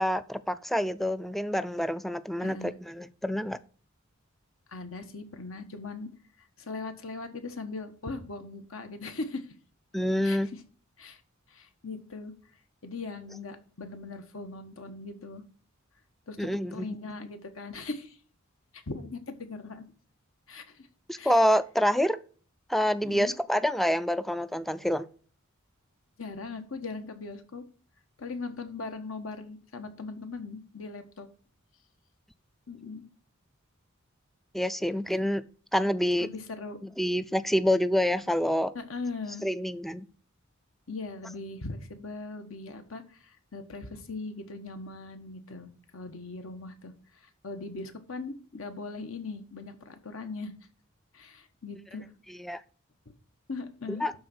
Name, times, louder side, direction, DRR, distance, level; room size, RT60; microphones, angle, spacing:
voice 1, 0.0-3.6 9.9-10.5 16.4-17.0 21.1-22.2 22.7-25.1 34.5-35.4 35.7-36.3 36.8-38.7 39.4-40.1 52.4-52.6 54.0-54.1, equal, ahead, 14 dB, 0.4 m, -27 dB
voice 2, 2.4-2.7 4.7-6.1 6.6-9.5 10.2-10.4 11.0-11.2 11.5-12.3 12.8-15.4 16.3-18.2 18.9-19.8 20.5-20.9 21.2-21.3 23.0-23.3 26.2-27.6 28.2-31.3 32.7-33.0 36.2-36.8 38.7-39.5 40.9-46.9 47.4-50.5 51.1-52.1 53.5-54.1, left 3 dB, 70° left, 7 dB, 1.4 m, -39 dB
12.0 x 4.0 x 6.1 m, 0.42 s
head